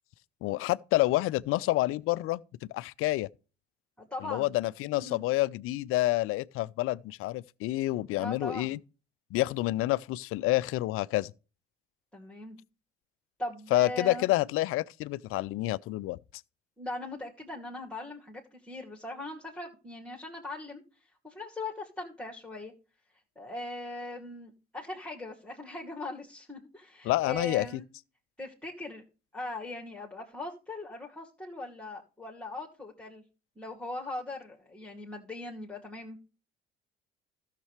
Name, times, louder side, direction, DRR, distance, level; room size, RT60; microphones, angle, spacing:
voice 1, 0.4-2.4 2.7-3.3 4.2-8.8 9.3-11.3 13.7-16.2 27.0-27.8, left 17 dB, 45° left, 0.4 m, -28 dB
voice 2, 4.0-4.5 4.9-5.2 8.1-8.7 12.1-12.6 13.4-14.3 16.8-22.7 23.4-27.9 28.4-29.0 29.3-33.2 33.6-36.2, left 2 dB, 5° left, 2.3 m, -40 dB
16.0 x 6.7 x 3.2 m
figure-of-eight pair, 55°, 31 cm